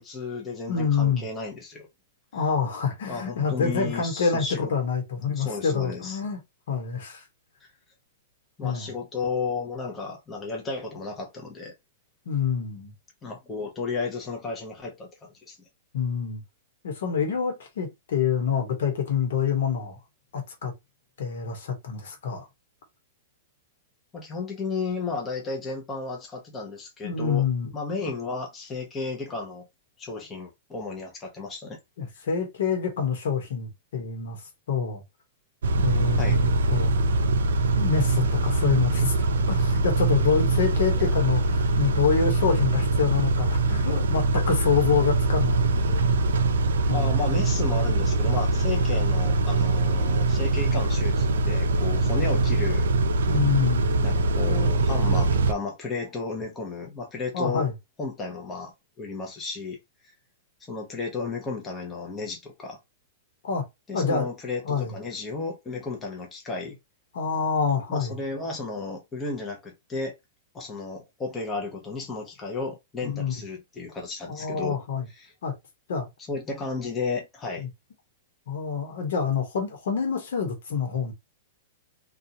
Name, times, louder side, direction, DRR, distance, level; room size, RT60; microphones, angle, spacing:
voice 1, 0.0-1.9 3.1-4.7 5.3-6.2 7.6-7.7 8.6-11.7 13.2-15.6 24.1-27.4 27.7-29.7 30.0-31.8 36.2-36.4 41.0-41.1 46.9-52.8 54.0-57.7 58.0-59.8 60.6-62.8 63.9-66.8 67.9-70.1 70.5-74.8 75.1-75.3 76.3-77.7, left 4 dB, 20° left, 0.8 m, -33 dB
voice 2, 0.7-1.3 2.3-6.4 6.7-7.2 8.6-8.9 12.3-12.9 15.9-16.4 16.8-20.0 20.3-20.7 21.2-22.5 27.0-27.7 32.0-35.0 35.8-36.9 37.8-46.4 46.9-47.2 53.3-53.9 57.3-57.7 63.4-63.7 63.9-64.3 64.6-64.9 67.1-68.2 73.0-73.4 74.3-75.1 75.4-75.6 75.9-76.1 77.6-77.7 78.5-81.1, left 6 dB, 75° left, 1.1 m, -27 dB
Car / Idling / Accelerating revving vroom, 35.6-55.5, right 2 dB, 85° right, 0.4 m, -23 dB
2.6 x 2.4 x 2.8 m
hypercardioid pair, 130°, 0 cm